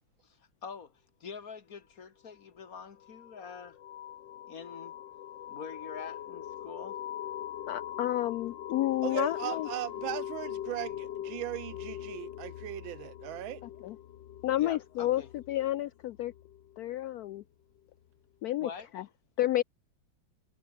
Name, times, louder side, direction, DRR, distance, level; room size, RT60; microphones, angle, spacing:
voice 1, 0.2-0.9 1.2-3.8 4.5-5.0 5.5-7.0 14.6-15.3 18.6-18.9, left 6 dB, 45° left, 1.9 m, -45 dB
sound 1, 2.6-17.1, left 11 dB, 70° left, 1.7 m, -42 dB
voice 2, 7.7-9.7 13.8-14.0 14.4-16.3 16.8-17.4 18.4-18.7 18.9-19.0 19.4-19.6, left 14 dB, 85° left, 0.8 m, -30 dB
voice 3, 9.0-13.6, right 15 dB, 80° right, 1.4 m, -38 dB
omnidirectional pair, 2.2 m